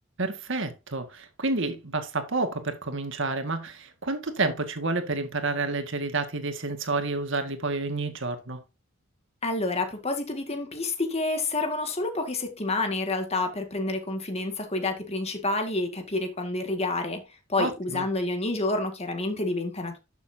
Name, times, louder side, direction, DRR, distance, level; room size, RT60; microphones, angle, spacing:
voice 1, 0.2-8.6 17.6-18.1, right 3 dB, 60° right, 1.9 m, -29 dB
voice 2, 9.4-17.2 17.5-20.0, left 2 dB, 30° left, 1.9 m, -29 dB
11.5 x 7.0 x 2.8 m
head